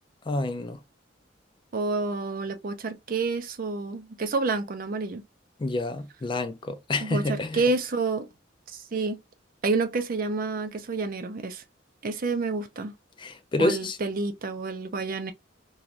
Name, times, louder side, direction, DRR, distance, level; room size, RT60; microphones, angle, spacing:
voice 1, 0.3-0.8 5.6-7.6 13.2-14.0, left 2 dB, 25° left, 0.3 m, -28 dB
voice 2, 1.7-5.2 7.0-8.3 8.7-9.2 9.6-11.6 12.0-12.9 13.6-15.3, right 3 dB, 45° right, 0.5 m, -29 dB
2.5 x 2.3 x 3.0 m
head